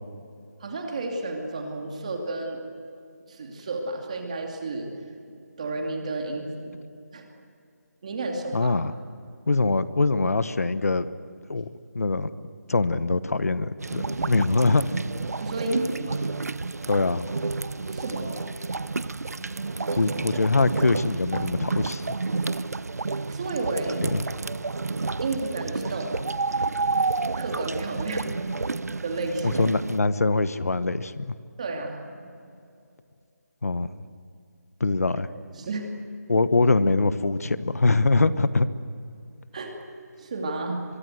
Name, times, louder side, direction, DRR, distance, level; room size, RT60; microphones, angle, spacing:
voice 1, 0.6-2.6 3.3-4.9 5.6-6.7 7.1-7.3 8.0-8.7 15.4-16.3 17.9-18.4 23.3-24.0 25.2-26.2 27.3-28.2 29.0-29.5 31.6-32.0 35.5-35.9 39.5-39.7 40.2-40.8, right 2 dB, 25° right, 2 dB, 2.6 m, -31 dB
voice 2, 8.5-8.9 9.5-11.1 11.5-11.7 11.9-12.3 12.7-14.9 16.9-17.3 19.9-22.2 24.1-24.2 29.4-31.3 33.6-33.9 34.8-35.3 36.3-38.7, left 3 dB, 60° left, 14 dB, 1.2 m, -23 dB
sound 1, 13.8-30.0, right 3 dB, 65° right, 0.7 m, -30 dB
24.0 x 22.5 x 8.0 m, 2.4 s
figure-of-eight pair, 175°, 9 cm